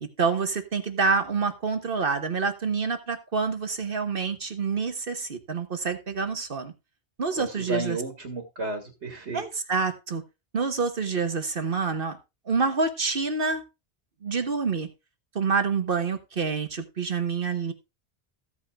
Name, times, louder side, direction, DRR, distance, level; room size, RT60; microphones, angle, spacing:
voice 1, 0.0-6.7 7.2-8.0 9.3-10.2 10.5-12.2 12.5-13.6 14.2-14.9 15.3-17.7, right 5 dB, 55° right, 8 dB, 1.3 m, -27 dB
voice 2, 7.4-9.4, right 2 dB, 75° right, 5 dB, 2.1 m, -32 dB
15.0 x 8.4 x 2.3 m, 0.25 s
omnidirectional pair, 1.1 m